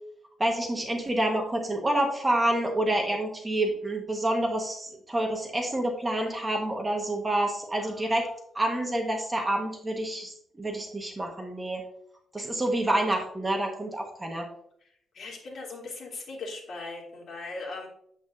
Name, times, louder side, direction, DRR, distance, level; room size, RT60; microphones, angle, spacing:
voice 1, 0.4-11.8 12.3-14.4, right 1 dB, 15° right, 2 dB, 1.3 m, -28 dB
voice 2, 7.8-8.1 12.4-12.5 14.8-14.9 15.1-17.9, left 3 dB, 50° left, -3 dB, 3.0 m, -39 dB
8.1 x 8.0 x 2.6 m, 0.67 s
cardioid pair, 135°, 0 cm